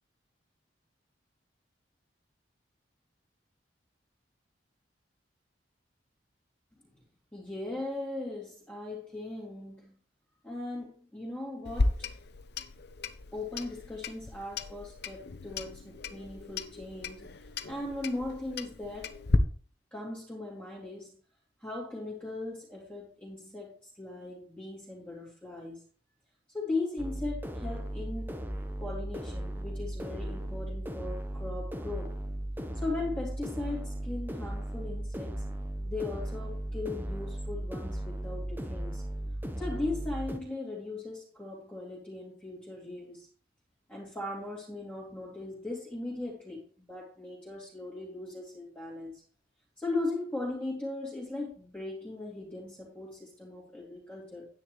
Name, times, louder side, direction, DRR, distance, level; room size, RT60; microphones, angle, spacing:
voice 1, 7.3-9.9 10.4-12.1 13.3-17.3 17.7-19.2 19.9-21.2 21.6-25.8 26.5-28.3 28.8-32.2 32.8-35.5 35.8-39.0 39.6-43.3 43.9-49.1 49.8-54.5, left 2 dB, 10° left, -6 dB, 2.8 m, -38 dB
Clock, 11.6-19.4, left 3 dB, 65° left, 0.8 m, -34 dB
sound 1, 27.0-40.4, right 1 dB, 10° right, 1.0 m, -36 dB
9.9 x 9.7 x 3.2 m, 0.41 s
head